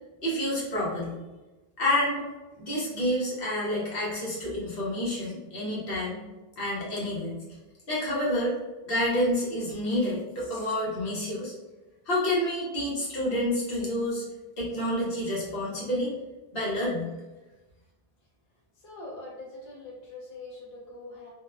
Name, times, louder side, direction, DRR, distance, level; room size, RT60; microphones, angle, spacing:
voice 1, 0.2-1.2 1.8-2.2 2.6-6.2 6.6-7.3 7.9-8.5 8.9-11.5 12.1-14.2 14.6-16.1 16.5-17.1, left 1 dB, 65° left, -7 dB, 1.1 m, -28 dB
voice 2, 18.7-21.3, left 2 dB, 35° left, -5 dB, 0.7 m, -43 dB
2.8 x 2.1 x 2.3 m, 1.1 s
omnidirectional pair, 1.0 m